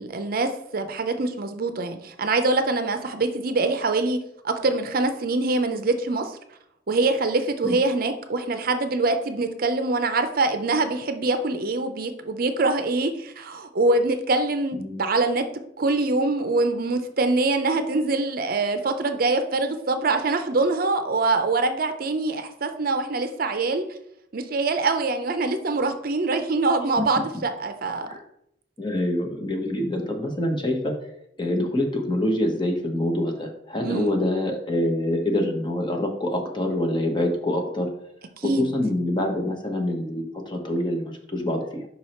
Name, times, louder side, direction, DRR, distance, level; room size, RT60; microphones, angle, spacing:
voice 1, 0.0-4.2 4.4-6.4 6.9-15.4 15.8-23.8 24.3-28.1 33.8-34.1 38.4-38.7, right 3 dB, 55° right, 8 dB, 0.6 m, -24 dB
voice 2, 28.8-30.9 31.4-37.9 38.4-41.9, left 1 dB, 25° left, 2 dB, 1.0 m, -26 dB
5.5 x 4.7 x 4.3 m, 0.75 s
head